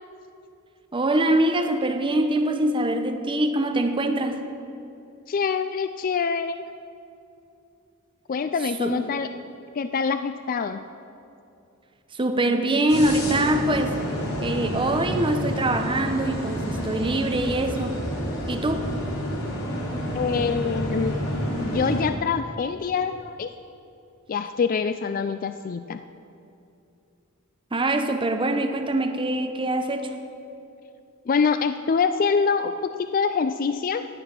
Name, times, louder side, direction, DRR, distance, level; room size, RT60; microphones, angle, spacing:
voice 1, 0.9-4.4 8.6-9.1 12.1-14.0 14.4-18.0 18.5-18.9 27.7-30.1, right 1 dB, 25° right, 6 dB, 0.9 m, -24 dB
voice 2, 5.3-6.6 8.3-9.3 9.8-10.8 20.1-21.2 21.6-23.5 24.3-26.0 31.3-34.1, left 5 dB, 40° left, 10 dB, 0.4 m, -25 dB
sound 1, 12.9-22.0, equal, 85° left, 3.3 m, -29 dB
15.5 x 9.8 x 6.0 m, 2.7 s
head